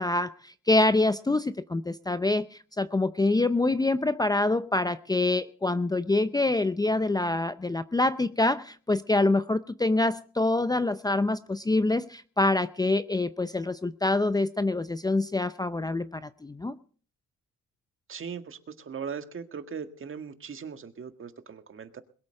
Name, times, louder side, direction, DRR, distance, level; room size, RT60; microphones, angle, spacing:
voice 1, 0.0-2.5 2.8-16.8, left 2 dB, 15° left, 0.6 m, -26 dB
voice 2, 18.1-22.0, right 6 dB, 45° right, 1.8 m, -39 dB
21.5 x 8.4 x 6.5 m
cardioid pair, 90°, 30 cm